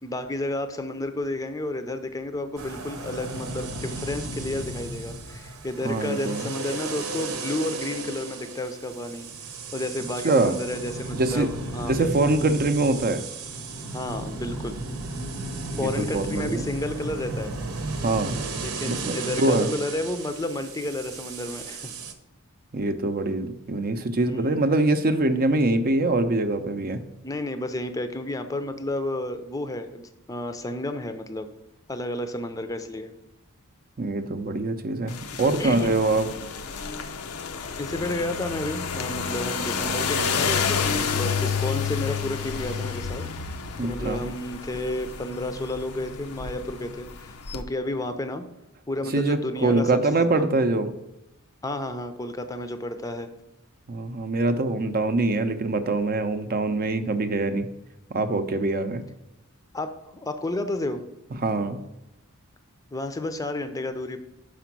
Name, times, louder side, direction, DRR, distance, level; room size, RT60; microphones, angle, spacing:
voice 1, 0.0-9.3 9.7-12.1 12.4-12.6 13.9-14.8 15.8-17.5 18.6-21.9 24.2-24.6 25.3-25.4 27.2-31.5 31.9-33.1 35.6-36.3 37.8-43.2 43.8-48.4 48.9-50.0 50.3-50.5 51.6-53.3 59.7-60.0 60.2-61.0 62.9-64.2, left 1 dB, 15° left, 8 dB, 0.5 m, -31 dB
sound 1, 2.6-22.1, right 3 dB, 80° right, 0.9 m, -35 dB
voice 2, 5.8-6.5 10.2-10.6 11.1-11.5 11.8-13.2 15.7-16.7 18.0-18.4 18.9-19.7 22.7-27.0 34.0-36.3 43.8-44.2 49.1-50.9 53.9-57.7 58.1-59.0 61.4-61.8, right 2 dB, 45° right, 9 dB, 0.6 m, -24 dB
sound 2, 35.1-47.6, left 6 dB, 85° left, 0.6 m, -30 dB
6.0 x 5.1 x 5.9 m, 0.94 s
head